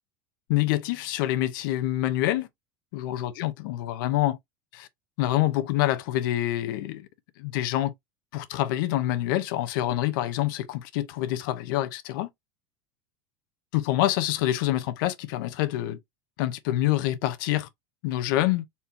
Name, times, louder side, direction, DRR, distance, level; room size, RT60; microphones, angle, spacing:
voice 1, 0.5-2.5 2.9-4.4 4.7-4.9 5.2-7.0 7.4-7.9 8.3-12.3 13.7-16.0 16.4-17.7 18.0-18.6, left 14 dB, 60° left, 0.8 m, -26 dB
4.3 x 2.8 x 3.5 m
supercardioid pair, 170°, 12 cm